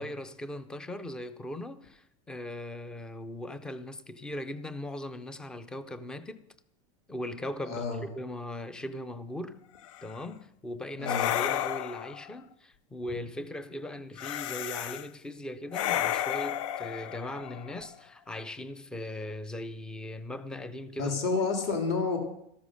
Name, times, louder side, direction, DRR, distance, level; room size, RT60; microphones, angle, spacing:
voice 1, 0.0-6.5 7.1-9.6 10.0-21.2, left 1 dB, 5° left, 0.5 m, -39 dB
voice 2, 7.7-8.0 11.0-11.3 21.0-22.2, left 4 dB, 40° left, 2.4 m, -29 dB
sound 1, 9.8-10.2 11.0-12.3 14.2-15.1 15.7-17.9, left 12 dB, 80° left, 0.6 m, -32 dB
13.5 x 12.5 x 6.3 m
supercardioid pair, 180°, 16 cm